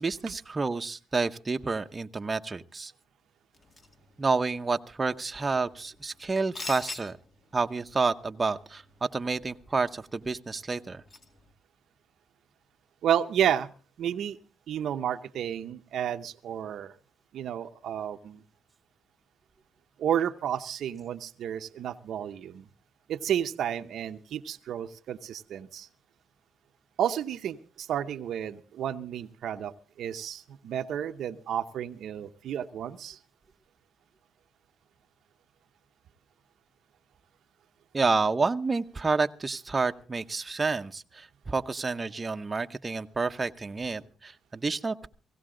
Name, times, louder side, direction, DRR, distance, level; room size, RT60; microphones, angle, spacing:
voice 1, 0.0-2.9 4.2-7.2 7.5-11.0 37.9-45.1, right 4 dB, 25° right, 7 dB, 0.8 m, -29 dB
sound 1, 3.5-11.5, left 3 dB, 40° left, 2.2 m, -47 dB
voice 2, 13.0-13.7 14.0-14.4 14.7-16.9 17.3-18.4 20.0-22.7 23.1-25.9 27.0-33.2, right 9 dB, 70° right, 9 dB, 0.7 m, -31 dB
17.5 x 16.5 x 3.8 m, 0.39 s
cardioid pair, 90°, 0 cm